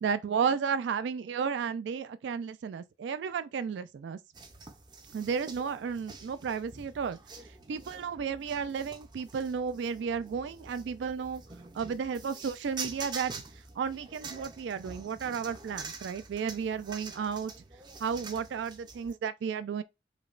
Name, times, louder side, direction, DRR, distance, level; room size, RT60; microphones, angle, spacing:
voice 1, 0.0-4.2 5.1-7.2 7.7-11.4 11.7-13.3 13.8-17.5 18.0-19.8, right 6 dB, 85° right, 0.3 m, -33 dB
sound 1, 4.3-19.1, right 4 dB, 25° right, 0.5 m, -46 dB
4.9 x 2.1 x 2.4 m
head